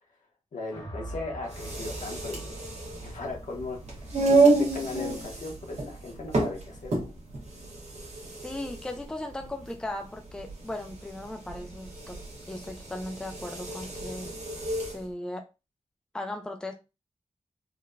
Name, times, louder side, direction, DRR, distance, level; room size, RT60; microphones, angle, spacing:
voice 1, 0.5-2.5 3.0-7.1, left 2 dB, 85° left, 0 dB, 1.1 m, -38 dB
sound 1, 0.7-9.0, right 1 dB, 65° left, 1.5 m, -45 dB
sound 2, 1.4-15.0, right 3 dB, 60° right, 1.1 m, -29 dB
voice 2, 8.4-12.2 12.5-14.3 14.9-15.5 16.1-16.7, left 1 dB, 5° left, 4 dB, 0.4 m, -37 dB
3.8 x 2.5 x 2.2 m, 0.27 s
wide cardioid pair, 160°, 13 cm